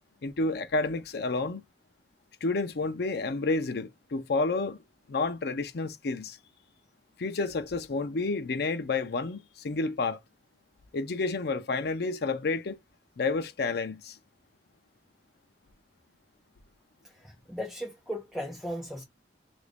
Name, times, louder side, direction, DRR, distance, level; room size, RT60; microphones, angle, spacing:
voice 1, 0.2-1.6 2.4-4.8 5.1-6.4 7.2-10.2 10.9-12.8 13.2-14.2, left 3 dB, 60° left, 0.5 m, -30 dB
voice 2, 17.0-19.0, equal, ahead, 0.8 m, -37 dB
2.9 x 2.5 x 3.3 m
head